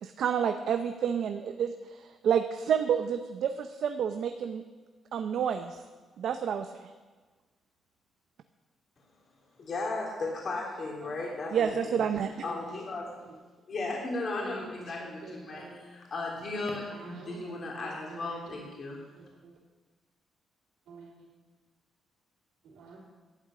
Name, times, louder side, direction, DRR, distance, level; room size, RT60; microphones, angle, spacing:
voice 1, 0.0-4.6 5.1-5.8 6.2-6.7 11.5-12.3, right 8 dB, 65° right, 7 dB, 0.7 m, -29 dB
voice 2, 9.6-12.0 12.4-13.1 13.7-15.6 15.9-19.0, left 3 dB, 45° left, -3 dB, 3.4 m, -35 dB
voice 3, 11.5-13.3 14.4-15.8 16.9-18.6 19.2-19.5 20.9-21.3 22.6-23.0, right 3 dB, 90° right, -8 dB, 3.7 m, -48 dB
12.0 x 8.2 x 8.8 m, 1.4 s
cardioid pair, 135°, 0 cm